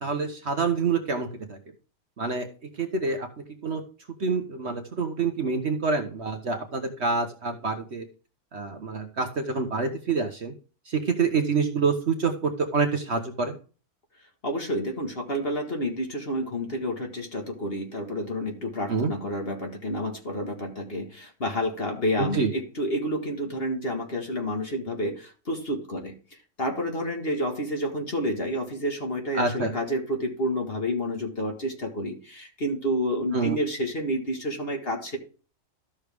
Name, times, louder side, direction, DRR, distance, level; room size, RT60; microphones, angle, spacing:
voice 1, 0.0-1.6 2.2-2.5 2.8-3.3 3.6-3.8 4.2-8.1 8.5-10.5 10.9-13.6 18.9-19.1 22.2-22.5 29.3-29.7 33.3-33.6, right 4 dB, 45° right, 5 dB, 1.2 m, -27 dB
voice 2, 14.4-26.1 26.6-35.2, equal, 40° left, 2 dB, 1.8 m, -29 dB
13.0 x 6.4 x 3.5 m, 0.37 s
omnidirectional pair, 1.7 m